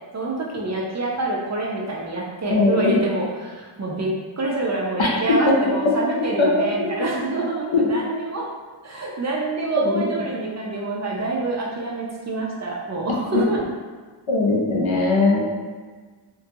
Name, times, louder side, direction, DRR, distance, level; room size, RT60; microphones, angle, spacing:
voice 1, 0.1-8.5 8.8-13.6, right 2 dB, 35° right, -3 dB, 0.5 m, -26 dB
voice 2, 2.5-2.9 5.0-5.1 6.4-6.9 9.8-10.0 13.3-13.4 14.3-15.4, left 3 dB, 80° left, -3 dB, 0.7 m, -20 dB
2.6 x 2.2 x 2.7 m, 1.4 s
cardioid pair, 55°, 47 cm